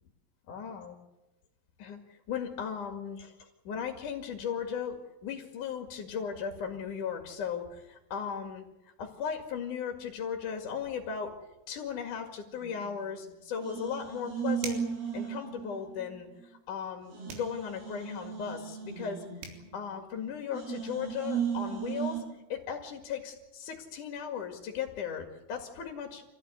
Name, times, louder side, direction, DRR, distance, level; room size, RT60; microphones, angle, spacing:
voice 1, 0.5-1.0 1.8-11.4 11.7-14.8 15.1-22.2 22.5-26.2, left 7 dB, 50° left, 4 dB, 2.9 m, -37 dB
sound 1, 12.6-13.3 13.6-16.2 16.5-16.6 17.0-20.1 20.5-22.2, right 7 dB, 50° right, 8.6 m, -36 dB
sound 2, 14.6-15.0 17.3-17.6 19.1-19.2 19.4-19.6, right 6 dB, 85° right, 6.2 m, -41 dB
28.0 x 16.5 x 9.7 m, 0.98 s
omnidirectional pair, 5.8 m